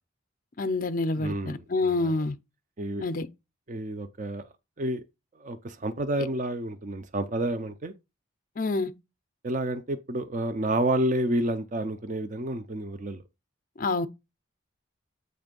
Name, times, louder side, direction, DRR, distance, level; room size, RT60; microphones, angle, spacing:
voice 1, 0.6-2.4 3.0-3.3 8.6-8.9 13.8-14.1, left 3 dB, 40° left, 0.5 m, -27 dB
voice 2, 1.2-2.1 2.8-3.1 3.7-4.5 4.8-5.0 5.4-7.9 9.4-13.2, right 1 dB, 35° right, 0.5 m, -30 dB
7.8 x 3.2 x 5.2 m
head